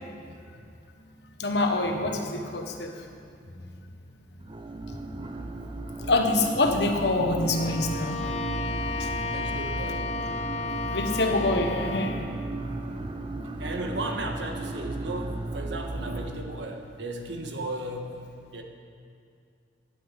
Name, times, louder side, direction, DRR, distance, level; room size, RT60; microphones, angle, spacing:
voice 1, 1.4-2.9 6.0-8.2 10.9-12.2 13.4-13.6, left 2 dB, 65° left, 4 dB, 1.2 m, -25 dB
sound 1, 4.4-16.3, right 2 dB, 25° right, 0.6 m, -35 dB
Bowed string instrument, 7.4-12.3, left 4 dB, 35° left, 0.6 m, -33 dB
voice 2, 9.3-10.1 13.6-18.1 18.5-18.6, right 2 dB, 80° right, 3 dB, 1.4 m, -35 dB
10.5 x 9.6 x 7.3 m, 2.3 s
head